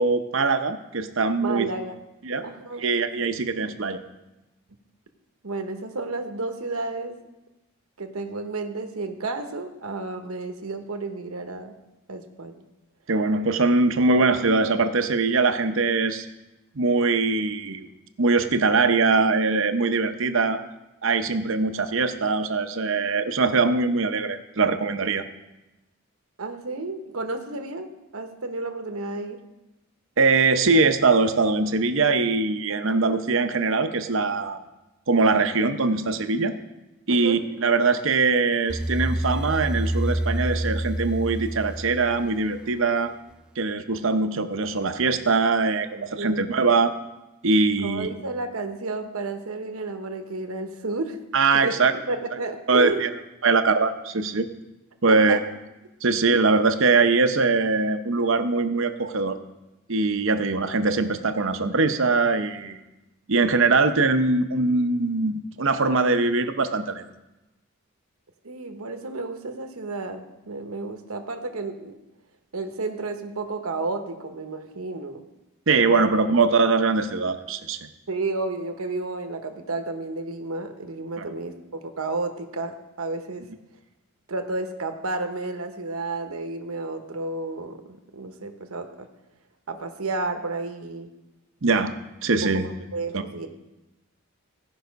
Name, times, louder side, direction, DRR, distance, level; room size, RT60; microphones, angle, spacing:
voice 1, 0.0-1.7 2.2-2.4 2.8-4.0 13.1-16.3 16.7-17.9 18.2-20.6 21.0-25.2 30.2-34.6 35.1-36.5 37.1-43.1 43.6-46.9 47.4-48.1 51.3-51.9 52.7-53.1 53.4-54.5 55.0-55.4 56.0-59.4 59.9-62.8 63.3-67.0 75.7-77.9 81.2-81.3 91.6-91.9 92.2-92.7 93.1-93.2, right 3 dB, 60° right, 9 dB, 0.7 m, -22 dB
voice 2, 1.4-2.0 2.4-2.8 3.2-3.3 3.6-3.8 5.4-7.2 8.0-11.8 12.1-12.7 26.4-27.9 28.1-29.4 37.1-37.4 46.0-46.7 47.8-51.2 51.6-51.7 52.1-53.1 55.1-55.4 68.4-71.9 72.5-75.2 75.8-76.2 78.1-83.5 84.3-89.1 89.7-91.1 92.5-93.5, right 3 dB, 80° right, 6 dB, 1.1 m, -32 dB
sound 1, 38.7-42.8, right 1 dB, 5° right, 0.3 m, -28 dB
16.5 x 5.6 x 5.2 m, 1.0 s
head